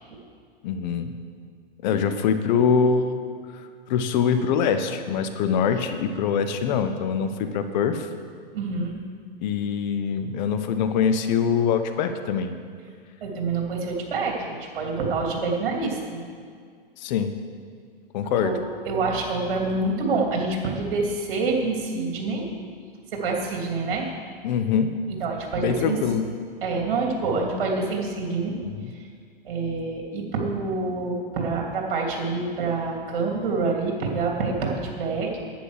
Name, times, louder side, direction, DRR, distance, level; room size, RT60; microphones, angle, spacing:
voice 1, 0.6-1.1 1.8-3.2 3.5-3.6 3.9-8.1 9.4-12.5 17.0-17.3 18.1-18.5 24.4-24.9 25.6-26.3 28.6-28.9, left 7 dB, 50° left, 9 dB, 1.0 m, -24 dB
voice 2, 8.5-9.0 13.2-16.2 18.4-18.5 18.8-22.5 23.1-24.1 25.2-26.0 26.6-28.6 28.9-29.1 29.4-35.4, right 3 dB, 60° right, 0 dB, 3.1 m, -27 dB
10.5 x 9.1 x 6.6 m, 2.1 s
hypercardioid pair, 125°, 30 cm